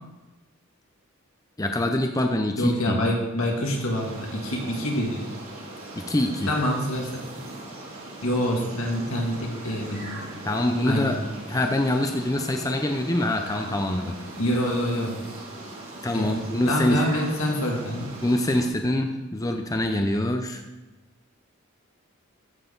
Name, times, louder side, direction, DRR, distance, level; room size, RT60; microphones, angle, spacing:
voice 1, 1.6-3.0 6.0-6.5 10.4-11.2 11.5-14.1 16.0-17.0 18.2-20.6, left 1 dB, 15° left, 4 dB, 0.6 m, -25 dB
voice 2, 2.6-5.2 6.5-7.2 8.2-10.2 10.8-11.2 14.4-15.1 16.1-16.4 16.7-18.1, equal, 85° left, -1 dB, 2.4 m, -26 dB
sound 1, 3.5-18.7, right 1 dB, 75° right, 2.6 m, -40 dB
13.5 x 6.4 x 3.9 m, 1.1 s
head